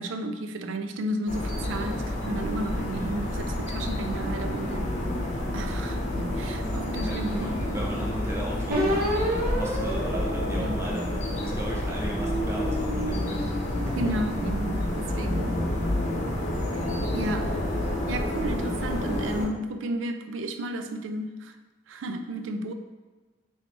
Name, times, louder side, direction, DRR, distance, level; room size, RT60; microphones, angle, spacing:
voice 1, 0.0-4.9 5.5-8.1 10.5-10.8 14.0-15.6 16.7-16.8 17.1-17.6 18.1-21.5 21.9-22.7, right 1 dB, 80° right, 8 dB, 0.4 m, -33 dB
sound 1, 1.3-19.5, left 1 dB, 40° left, 0.8 m, -29 dB
voice 2, 7.0-14.0, right 1 dB, 15° right, -3 dB, 0.5 m, -36 dB
sound 2, 8.7-11.4 12.0-14.5, equal, 50° right, 0.8 m, -31 dB
3.2 x 3.1 x 4.1 m, 1.3 s
head